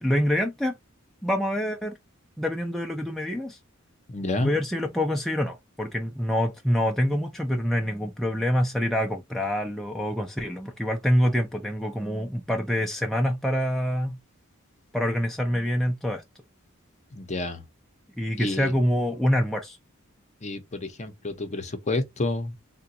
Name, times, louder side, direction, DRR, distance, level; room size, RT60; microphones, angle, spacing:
voice 1, 0.0-0.8 1.2-2.0 2.4-3.6 4.4-14.2 14.9-16.2 18.2-19.8, equal, ahead, 0.4 m, -26 dB
voice 2, 4.1-4.5 17.1-17.6 18.4-18.7 20.4-22.5, left 2 dB, 35° left, 0.7 m, -29 dB
3.8 x 2.2 x 2.6 m
head